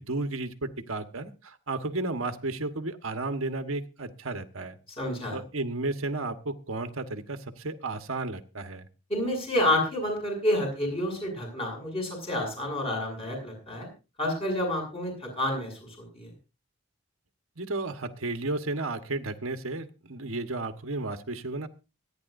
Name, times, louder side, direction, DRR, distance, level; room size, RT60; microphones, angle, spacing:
voice 1, 0.0-4.8 5.3-8.8 17.6-21.7, right 2 dB, 80° right, 7 dB, 1.3 m, -33 dB
voice 2, 5.0-5.4 9.1-13.9 14.2-15.8 16.1-16.3, left 1 dB, 30° left, 1 dB, 7.0 m, -29 dB
25.0 x 10.0 x 2.6 m, 0.31 s
head